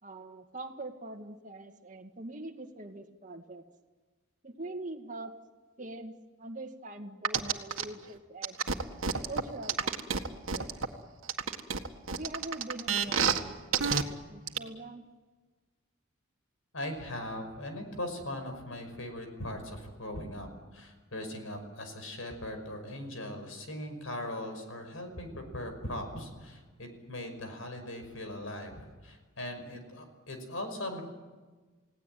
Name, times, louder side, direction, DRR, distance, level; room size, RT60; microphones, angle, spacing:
voice 1, 0.0-3.6 4.4-5.3 5.8-6.1 6.4-8.6 9.3-10.2 10.5-11.0 12.1-15.0, right 2 dB, 35° right, 4 dB, 2.1 m, -43 dB
sound 1, 7.2-7.8 8.4-10.9 11.3-13.4 13.7-14.0 14.5-14.6, right 6 dB, 75° right, 1.8 m, -28 dB
voice 2, 16.7-31.0, left 1 dB, 80° left, 6 dB, 5.7 m, -40 dB
29.5 x 18.0 x 9.4 m, 1.3 s
head